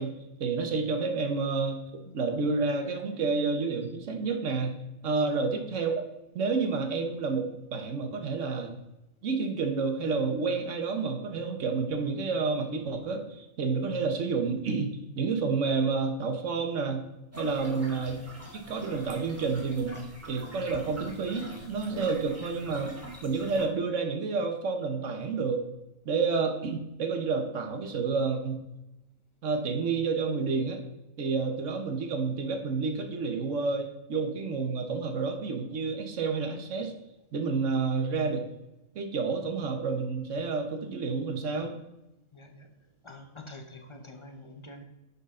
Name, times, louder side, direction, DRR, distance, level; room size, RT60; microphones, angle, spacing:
voice 1, 0.0-1.8 2.1-4.8 5.0-6.0 6.3-8.7 9.2-17.1 17.4-18.2 18.5-19.9 20.3-23.0 23.2-25.7 26.0-28.6 29.4-30.8 31.2-36.9 37.3-38.5 38.9-41.8, right 4 dB, 65° right, 5 dB, 1.4 m, -29 dB
voice 2, 5.1-5.5 17.8-17.9 39.4-39.7 42.3-42.7 43.0-44.8, left 2 dB, 25° left, 5 dB, 0.8 m, -47 dB
sound 1, 17.3-23.7, right 1 dB, 10° right, 1.7 m, -45 dB
9.8 x 5.7 x 3.8 m, 0.93 s
omnidirectional pair, 1.4 m